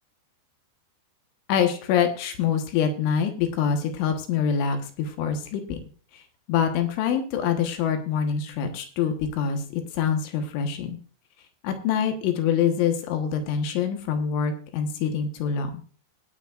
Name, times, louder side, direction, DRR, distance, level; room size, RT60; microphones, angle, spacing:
voice 1, 1.5-5.8 6.1-6.2 6.5-11.0 11.6-15.7, left 7 dB, 90° left, 6 dB, 3.7 m, -25 dB
20.5 x 9.6 x 2.5 m, 0.41 s
omnidirectional pair, 5.3 m